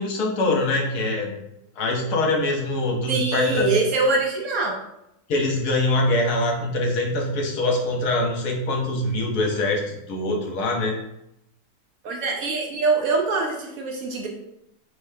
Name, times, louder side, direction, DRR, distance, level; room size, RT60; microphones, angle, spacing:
voice 1, 0.0-1.3 1.8-3.8 5.3-11.0, left 2 dB, 70° left, 1 dB, 1.3 m, -23 dB
voice 2, 3.1-4.7 12.0-14.3, right 3 dB, 65° right, 0 dB, 1.0 m, -23 dB
5.4 x 3.3 x 2.7 m, 0.83 s
omnidirectional pair, 1.8 m